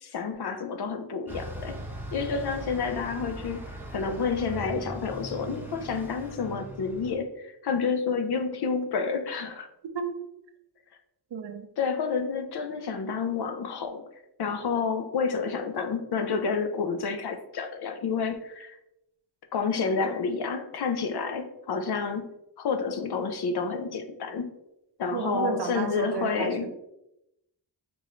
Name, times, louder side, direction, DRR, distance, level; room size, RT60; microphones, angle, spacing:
voice 1, 0.0-1.8 2.1-9.7 11.8-14.1 14.4-18.8 19.5-22.3 22.6-24.5 25.0-26.7, left 5 dB, 65° left, 8 dB, 0.5 m, -29 dB
Bus, 1.3-7.2, right 1 dB, 5° right, 0.6 m, -39 dB
voice 2, 11.3-11.7 25.1-26.7, right 6 dB, 70° right, 7 dB, 0.6 m, -32 dB
4.8 x 3.0 x 2.4 m, 0.86 s
wide cardioid pair, 80°, 43 cm